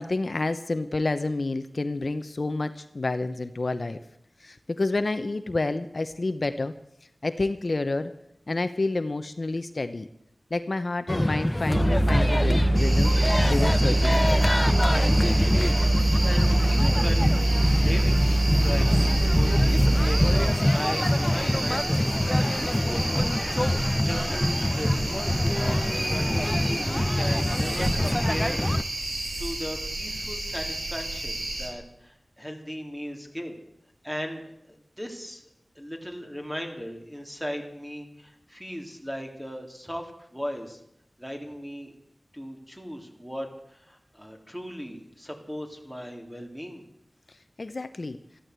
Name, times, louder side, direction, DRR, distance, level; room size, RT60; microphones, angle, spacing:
voice 1, 0.0-4.0 4.4-6.7 7.2-8.1 8.5-10.1 10.5-14.5 47.3-48.2, left 2 dB, 60° left, 10 dB, 0.9 m, -29 dB
sound 1, 11.1-28.8, left 1 dB, 15° left, 0.6 m, -25 dB
sound 2, 11.7-20.5, right 1 dB, 45° right, 5.4 m, -22 dB
sound 3, 12.7-31.7, right 2 dB, 85° right, 5.6 m, -32 dB
voice 2, 16.2-17.3 17.8-20.4 20.7-23.3 23.8-28.9 29.4-33.6 34.0-34.4 34.7-35.4 35.7-40.8 41.2-41.9 42.3-46.8, equal, 5° right, 3 dB, 3.2 m, -37 dB
14.0 x 12.5 x 8.2 m, 0.79 s
wide cardioid pair, 65°, 0 cm